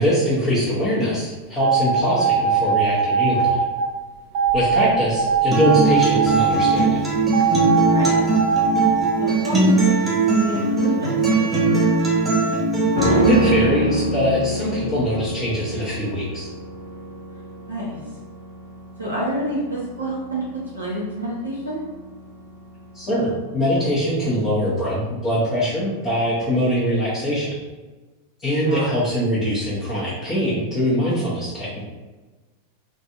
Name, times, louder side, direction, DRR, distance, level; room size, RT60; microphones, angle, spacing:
voice 1, 0.0-3.6 4.5-7.0 13.0-16.5 22.9-27.5 28.4-31.8, equal, 25° left, -12 dB, 1.2 m, -22 dB
sound 1, 1.6-3.9 4.3-6.8 7.3-9.1, right 6 dB, 50° right, 0.5 m, -20 dB
Acoustic guitar, 5.5-13.5, right 3 dB, 15° right, 0.9 m, -20 dB
voice 2, 7.9-8.2 9.2-9.7 10.0-12.0 17.7-18.0 19.0-20.4 20.7-21.8 28.7-28.9, right 1 dB, 80° right, -8 dB, 1.1 m, -28 dB
sound 2, 13.0-22.3 22.6-22.7, equal, 60° left, 0.8 m, -26 dB
3.9 x 2.7 x 2.7 m, 1.2 s
figure-of-eight pair, 90°, 0 cm